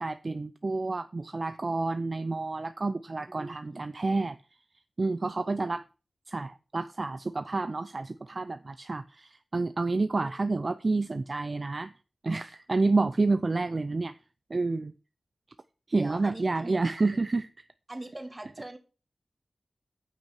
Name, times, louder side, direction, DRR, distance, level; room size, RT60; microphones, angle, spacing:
voice 1, 0.0-4.4 5.0-5.8 6.3-11.9 12.2-14.1 14.5-14.9 15.9-17.5, right 3 dB, 50° right, 0.5 m, -29 dB
voice 2, 3.3-3.8 10.2-10.3 15.9-16.8 17.9-18.8, right 2 dB, 30° right, 1.9 m, -41 dB
8.5 x 6.1 x 5.8 m
cardioid pair, 50°, 0 cm